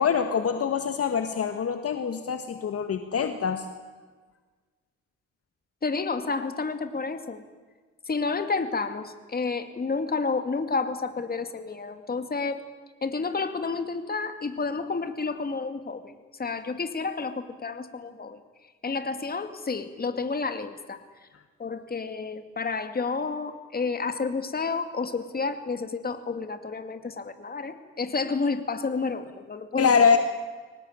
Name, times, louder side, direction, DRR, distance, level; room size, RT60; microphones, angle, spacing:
voice 1, 0.0-3.7 29.8-30.2, left 6 dB, 50° left, 7 dB, 1.7 m, -24 dB
voice 2, 5.8-7.4 8.1-12.6 13.0-16.1 16.4-18.4 18.8-21.0 21.6-30.0, left 4 dB, 30° left, 8 dB, 2.5 m, -30 dB
23.5 x 18.5 x 9.0 m, 1.4 s
cardioid pair, 90°, 30 cm